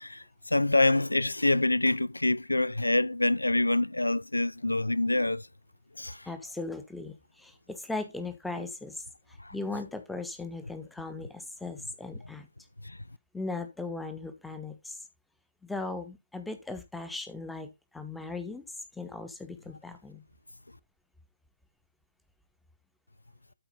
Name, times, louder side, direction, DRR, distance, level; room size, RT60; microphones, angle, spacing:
voice 1, 0.0-5.5 6.0-6.3 9.4-9.5 12.8-13.0, left 2 dB, 75° left, 0.4 m, -26 dB
voice 2, 6.2-12.5 13.3-15.1 15.6-18.6 18.9-20.2, left 3 dB, ahead, 1.2 m, -38 dB
12.5 x 5.0 x 3.8 m
figure-of-eight pair, 140°, 0 cm